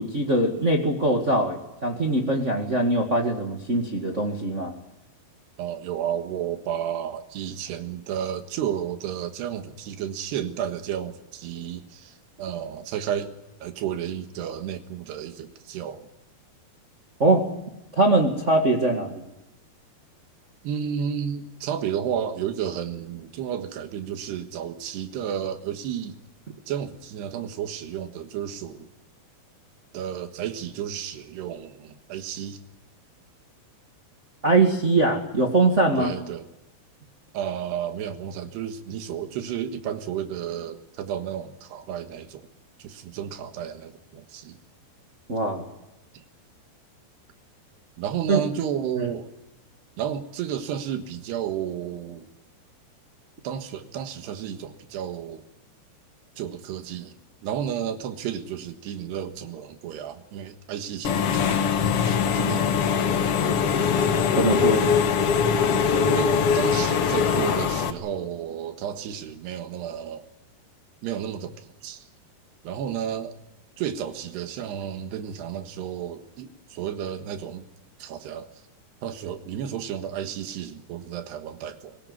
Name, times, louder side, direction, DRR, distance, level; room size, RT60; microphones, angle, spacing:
voice 1, 0.0-4.7 17.2-17.4 18.0-19.2 34.4-36.1 45.3-45.6 48.3-48.4 64.4-64.8, right 2 dB, 55° right, 2 dB, 0.8 m, -22 dB
voice 2, 5.6-13.3 13.6-16.1 20.6-26.2 26.7-28.9 29.9-32.6 36.0-36.5 37.3-42.5 42.8-44.6 46.1-46.2 48.0-49.3 50.0-52.3 53.4-55.4 56.4-57.2 57.4-61.7 62.1-63.1 66.1-70.3 71.0-72.1 72.7-73.4 73.8-77.7 78.0-78.5 79.0-82.0, right 9 dB, 75° right, 8 dB, 3.5 m, -32 dB
Engine / Mechanisms, 61.0-67.9, left 6 dB, 70° left, 1.4 m, -22 dB
24.5 x 17.0 x 9.6 m, 0.91 s
omnidirectional pair, 4.9 m